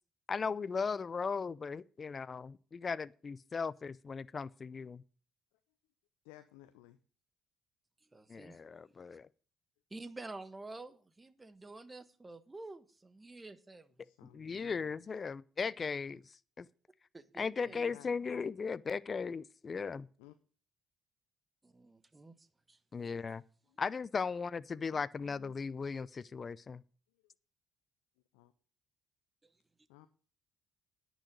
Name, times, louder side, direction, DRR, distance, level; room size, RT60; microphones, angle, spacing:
voice 1, 0.3-5.0 8.3-9.3 14.2-16.7 17.4-20.1 22.9-23.4 23.8-26.8, left 5 dB, 40° left, 0.5 m, -37 dB
voice 2, 6.2-7.0 14.0-15.1 17.6-18.4 20.2-20.3 23.7-23.8 24.9-25.6 28.3-28.5 29.9-30.1, left 14 dB, 85° left, 0.7 m, -57 dB
voice 3, 8.1-8.8 9.0-9.2 9.9-13.9 17.1-17.9 21.6-22.8 29.4-29.5, right 2 dB, 20° right, 1.4 m, -49 dB
10.0 x 6.4 x 7.8 m
hypercardioid pair, 55°, 0 cm